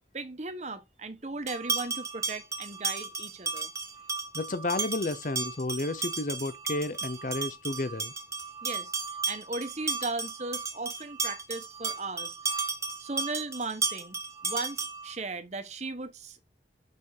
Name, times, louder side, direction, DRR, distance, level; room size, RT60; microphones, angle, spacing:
voice 1, 0.1-3.7 8.6-8.9 9.3-12.6 13.0-16.4, right 3 dB, 40° right, 1.1 m, -37 dB
sound 1, 1.5-15.1, right 4 dB, 15° right, 1.1 m, -34 dB
voice 2, 4.3-8.1, left 2 dB, 45° left, 0.6 m, -32 dB
6.7 x 5.5 x 4.8 m
head